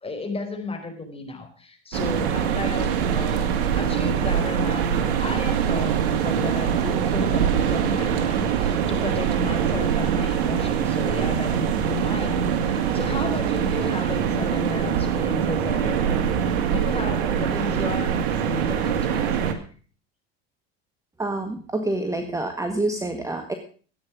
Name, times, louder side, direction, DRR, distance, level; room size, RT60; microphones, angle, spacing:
voice 1, 0.0-3.5 3.8-16.3 16.7-19.6, left 3 dB, 20° left, 4 dB, 4.6 m, -34 dB
sound 1, 1.9-19.5, right 8 dB, 80° right, 2.2 m, -23 dB
voice 2, 21.2-23.5, right 2 dB, 10° right, 6 dB, 1.7 m, -27 dB
14.5 x 9.6 x 6.2 m, 0.41 s
supercardioid pair, 95°, 31 cm